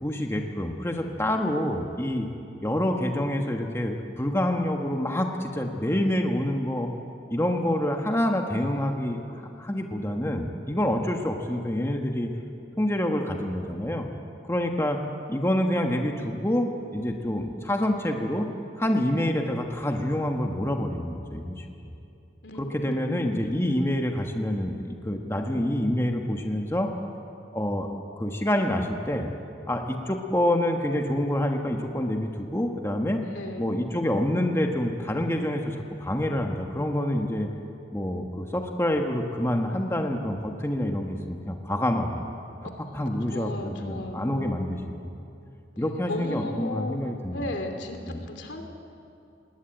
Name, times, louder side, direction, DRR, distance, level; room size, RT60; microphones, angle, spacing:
voice 1, 0.0-2.3 2.6-6.9 7.3-9.2 9.6-12.3 12.8-14.1 14.5-15.0 15.3-18.5 18.8-21.6 22.6-26.9 27.5-27.9 28.2-29.3 29.7-33.2 33.6-37.5 37.9-42.2 42.9-44.8 45.0-45.1 45.8-47.5 48.1-48.2, left 1 dB, 15° left, 3 dB, 1.3 m, -27 dB
voice 2, 22.9-23.3 33.3-33.7 43.3-44.3 46.1-47.0 47.3-48.0 48.3-48.6, left 1 dB, 85° left, 5 dB, 2.8 m, -34 dB
20.5 x 19.5 x 9.2 m, 2.7 s
head